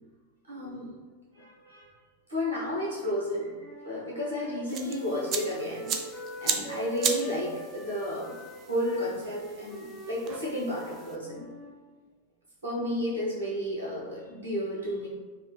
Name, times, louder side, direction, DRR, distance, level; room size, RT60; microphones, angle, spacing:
voice 1, 0.5-0.9 1.3-1.9 2.3-8.3 8.7-11.5 12.6-15.1, left 1 dB, 65° right, -6 dB, 1.1 m, -32 dB
Wind instrument woodwind instrument, 3.6-11.7, right 1 dB, 25° left, 0.7 m, -43 dB
sound 1, 4.7-11.2, right 6 dB, 35° right, 0.3 m, -36 dB
5.1 x 2.2 x 2.2 m, 1.4 s
figure-of-eight pair, 90°, 0 cm